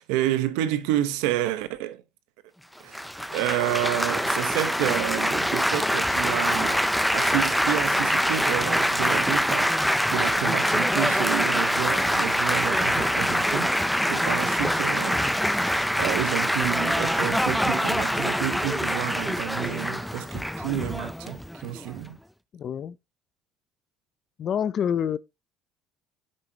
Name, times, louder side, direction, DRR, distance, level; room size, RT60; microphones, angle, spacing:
voice 1, 0.0-2.0 2.8-3.0 3.3-6.9 7.1-13.8 14.1-22.2, right 13 dB, 90° right, 1.1 m, -30 dB
Laughter / Applause / Chatter, 2.9-22.1, equal, ahead, 0.6 m, -24 dB
voice 2, 22.5-23.0 24.4-25.2, left 8 dB, 45° left, 0.6 m, -27 dB
9.9 x 7.5 x 2.9 m
supercardioid pair, 100°, 0 cm